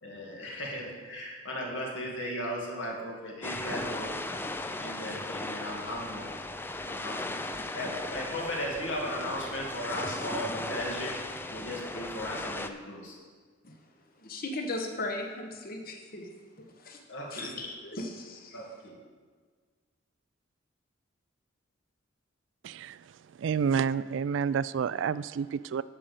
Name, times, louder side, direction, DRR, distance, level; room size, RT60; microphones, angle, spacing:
voice 1, 0.0-4.2 4.8-6.3 6.9-7.4 7.7-11.2 11.5-13.2 17.1-17.5 18.5-19.0, equal, 75° left, -2 dB, 2.3 m, -36 dB
sound 1, 3.4-12.7, left 2 dB, 10° left, 0.4 m, -37 dB
voice 2, 14.2-16.3 16.6-17.0 17.3-18.6, left 2 dB, 50° left, 3 dB, 1.1 m, -37 dB
voice 3, 22.6-23.0 23.4-25.8, right 6 dB, 70° right, 17 dB, 0.3 m, -29 dB
11.0 x 5.1 x 6.7 m, 1.5 s
head